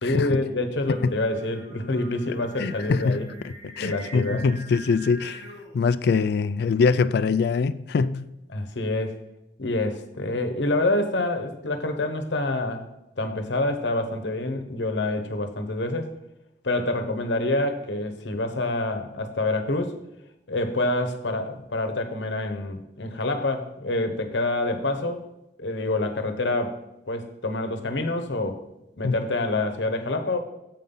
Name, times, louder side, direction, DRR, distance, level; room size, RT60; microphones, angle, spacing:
voice 1, 0.0-3.2 3.8-4.5 8.5-9.2 9.6-12.9 13.2-16.1 16.6-20.0 20.5-25.3 25.6-28.6 29.0-30.4, left 2 dB, 80° left, 1.0 m, -27 dB
Singing, 0.8-5.9, right 2 dB, 55° right, 2.9 m, -44 dB
voice 2, 2.6-5.4 5.7-8.2 29.0-29.1, left 5 dB, 60° left, 0.3 m, -23 dB
7.5 x 5.4 x 5.5 m
head